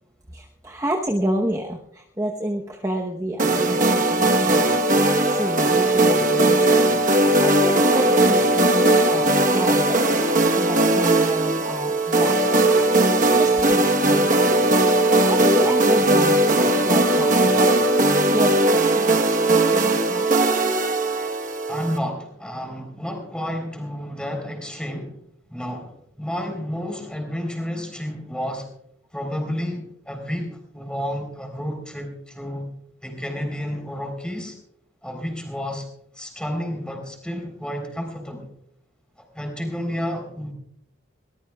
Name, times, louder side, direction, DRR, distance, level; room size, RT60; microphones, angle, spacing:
voice 1, 0.3-10.2 10.5-12.4 13.3-14.6 15.2-17.9 18.3-19.2 19.5-20.5, right 1 dB, 15° right, 1 dB, 0.9 m, -29 dB
sound 1, 3.4-22.0, right 2 dB, 40° right, 1.1 m, -18 dB
voice 2, 21.7-25.2 25.5-28.7 29.1-32.7 33.0-34.6 35.0-35.9 36.2-38.5 39.2-40.5, equal, 5° left, 3 dB, 3.7 m, -31 dB
22.0 x 19.0 x 2.3 m, 0.72 s
head